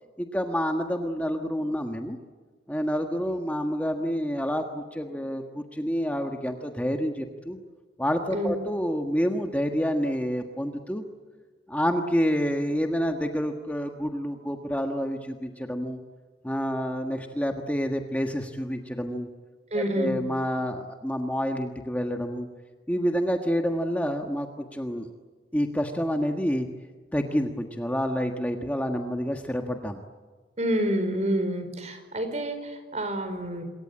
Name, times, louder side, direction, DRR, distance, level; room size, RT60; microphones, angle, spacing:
voice 1, 0.2-2.2 2.7-7.6 8.0-11.0 11.7-16.0 16.4-19.3 19.7-22.5 22.9-25.1 25.5-26.7 27.1-30.0, equal, 10° left, 4 dB, 1.4 m, -28 dB
voice 2, 19.7-20.1 30.6-33.6, right 1 dB, 40° right, 8 dB, 4.8 m, -28 dB
27.0 x 23.0 x 8.6 m, 1.4 s
head